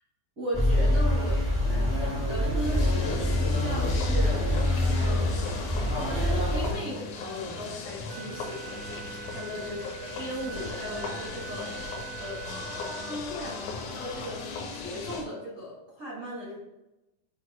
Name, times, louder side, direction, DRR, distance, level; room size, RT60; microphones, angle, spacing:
voice 1, 0.4-1.4 1.7-4.4 5.0-5.4 6.5-11.7 12.2-12.4 13.1-14.4 14.7-16.6, equal, 65° right, -8 dB, 0.8 m, -37 dB
sound 1, 0.5-6.7, left 1 dB, 30° left, 0.4 m, -25 dB
sound 2, 2.6-15.3, left 4 dB, 70° left, 2.0 m, -38 dB
sound 3, 8.1-13.3, right 10 dB, 85° right, 2.4 m, -42 dB
8.1 x 2.7 x 4.7 m, 0.97 s
omnidirectional pair, 4.4 m